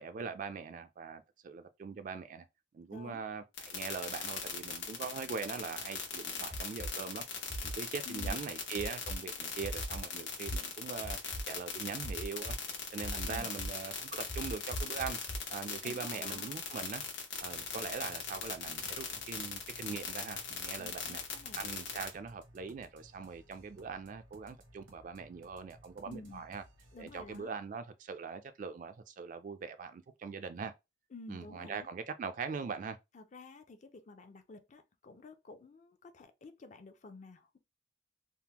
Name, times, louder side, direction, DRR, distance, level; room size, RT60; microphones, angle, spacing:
voice 1, 0.0-2.5 2.7-7.2 7.6-15.2 15.5-17.0 17.4-21.2 21.6-26.6 27.0-30.7 31.3-33.0, right 5 dB, 45° right, 0.3 m, -42 dB
voice 2, 2.9-3.2 8.0-8.4 13.3-13.5 15.8-16.5 20.8-21.6 26.0-26.4 26.9-27.5 31.1-31.9 33.1-37.6, left 3 dB, 40° left, 0.4 m, -51 dB
sound 1, 3.6-22.1, left 7 dB, 80° left, 0.9 m, -39 dB
sound 2, 6.5-6.9 7.5-7.7 8.2-8.3 8.8-9.1 9.6-10.0 10.5-10.6 11.0-11.4 12.0-12.5 13.0-13.7 14.3-15.4, right 1 dB, 60° left, 1.3 m, -39 dB
sound 3, 17.5-27.4, right 1 dB, 90° right, 1.0 m, -60 dB
3.4 x 2.1 x 2.9 m
head